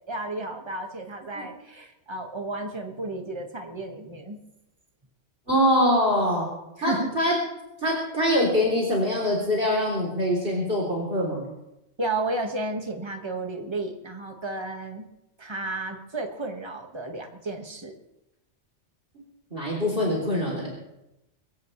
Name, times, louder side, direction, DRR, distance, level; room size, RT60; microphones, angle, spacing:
voice 1, 0.1-4.4 6.8-7.1 12.0-15.1 15.4-17.9, right 2 dB, 25° right, 3 dB, 1.8 m, -32 dB
voice 2, 5.5-6.5 6.8-7.3 7.8-11.5 19.5-20.7, equal, 50° right, -3 dB, 3.8 m, -24 dB
22.5 x 17.0 x 3.3 m, 0.90 s
omnidirectional pair, 1.2 m